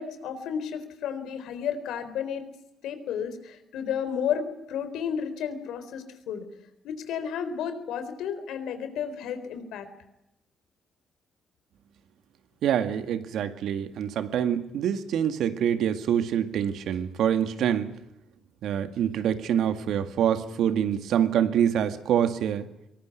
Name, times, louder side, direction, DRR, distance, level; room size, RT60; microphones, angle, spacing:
voice 1, 0.0-2.4 2.8-6.5 6.8-9.9, left 8 dB, 85° left, 4.0 m, -32 dB
voice 2, 12.6-17.9 18.6-22.7, right 9 dB, 75° right, 2.0 m, -25 dB
23.5 x 19.5 x 9.4 m
cardioid pair, 90°, 0 cm